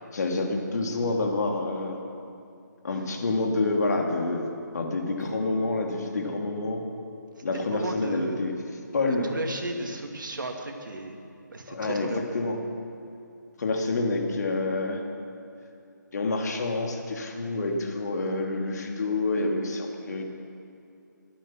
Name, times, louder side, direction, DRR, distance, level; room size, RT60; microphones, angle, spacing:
voice 1, 0.1-2.0 2.8-4.5 4.7-6.8 7.4-8.6 8.9-9.3 11.7-12.6 13.6-15.0 16.1-20.2, left 2 dB, 55° left, 2 dB, 2.5 m, -28 dB
Chink clink, 5.2-9.7, left 3 dB, 45° right, 3.0 m, -46 dB
voice 2, 7.4-8.4 9.2-11.2 11.5-12.2, right 2 dB, 80° right, 3 dB, 2.4 m, -34 dB
23.0 x 9.0 x 6.1 m, 2.6 s
figure-of-eight pair, 160°, 10 cm